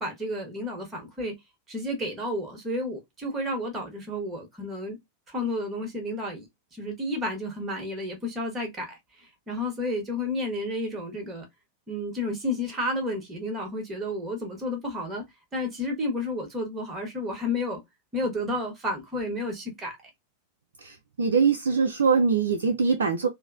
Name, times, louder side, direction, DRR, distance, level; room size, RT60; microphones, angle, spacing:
voice 1, 0.0-1.3 1.7-5.0 5.3-11.4 11.9-15.2 15.5-17.8 18.1-19.9, left 1 dB, 20° right, 1.1 m, -31 dB
voice 2, 20.8-23.3, right 5 dB, 65° right, 0.3 m, -23 dB
2.9 x 2.0 x 2.4 m
figure-of-eight pair, 90°, 0 cm